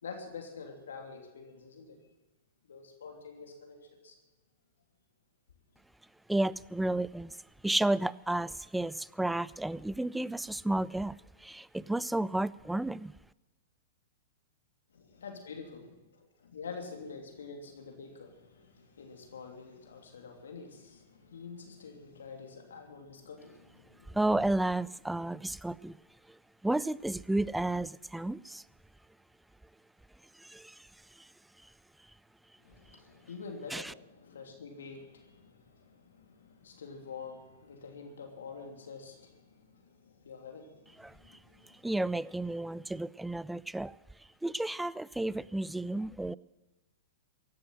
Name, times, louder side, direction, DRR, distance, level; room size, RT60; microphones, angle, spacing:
voice 1, 0.0-2.0 2.7-3.8 4.0-4.2 14.9-24.2 32.6-41.9, left 5 dB, 75° left, 3 dB, 3.0 m, -47 dB
voice 2, 6.3-7.4 7.6-11.2 11.4-13.1 24.1-26.0 26.6-28.6 30.4-30.8 33.7-33.8 41.0-41.4 41.8-44.0 44.4-46.4, right 2 dB, 5° right, 21 dB, 0.4 m, -32 dB
15.5 x 11.5 x 7.8 m, 1.1 s
hypercardioid pair, 105°, 0 cm